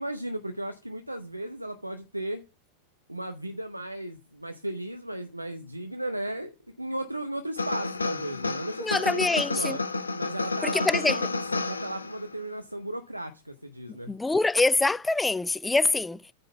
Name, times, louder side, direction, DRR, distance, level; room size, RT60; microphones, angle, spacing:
voice 1, 0.0-2.4 3.1-9.8 10.2-14.1, right 1 dB, 85° right, 0.6 m, -35 dB
sound 1, 7.6-12.3, left 3 dB, 75° left, 0.7 m, -31 dB
voice 2, 8.8-9.8 10.6-11.2 13.9-16.2, left 3 dB, 10° left, 0.3 m, -25 dB
8.9 x 3.8 x 6.8 m
figure-of-eight pair, 90°, 0 cm